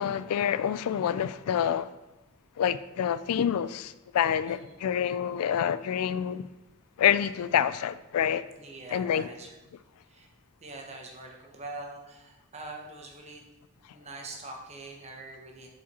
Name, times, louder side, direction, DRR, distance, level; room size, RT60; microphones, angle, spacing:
voice 1, 0.0-1.9 2.6-6.5 7.0-8.4 8.9-9.3, left 9 dB, 90° left, 16 dB, 0.3 m, -27 dB
voice 2, 4.5-4.8 8.6-9.6 10.1-10.3 10.6-13.4 13.9-15.7, right 2 dB, 30° right, 1 dB, 1.0 m, -43 dB
7.1 x 4.9 x 4.2 m, 1.0 s
head